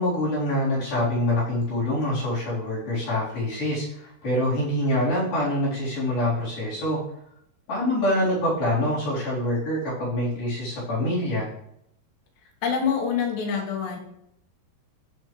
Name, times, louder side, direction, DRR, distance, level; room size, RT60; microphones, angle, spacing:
voice 1, 0.0-7.0 7.7-11.5, left 1 dB, 60° left, -4 dB, 6.0 m, -25 dB
voice 2, 12.6-14.0, left 6 dB, 90° left, 1 dB, 4.0 m, -25 dB
15.0 x 6.4 x 3.4 m, 0.74 s
omnidirectional pair, 4.7 m